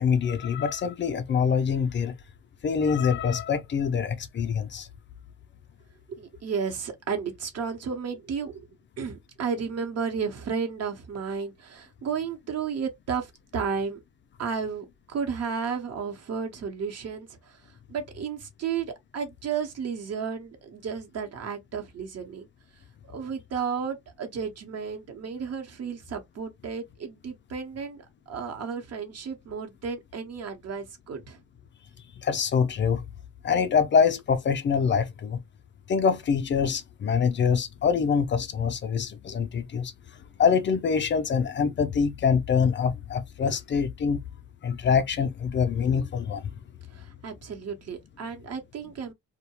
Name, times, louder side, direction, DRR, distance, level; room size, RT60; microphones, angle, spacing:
voice 1, 0.0-2.1 2.6-4.9 32.2-33.0 33.4-35.4 35.9-39.9 40.4-44.2 44.6-46.4, left 6 dB, 40° left, 0.4 m, -25 dB
voice 2, 6.1-8.7 9.0-14.0 14.4-22.5 23.1-31.4 46.9-49.1, right 6 dB, 55° right, 0.8 m, -33 dB
2.3 x 2.1 x 2.8 m
cardioid pair, 90°, 30 cm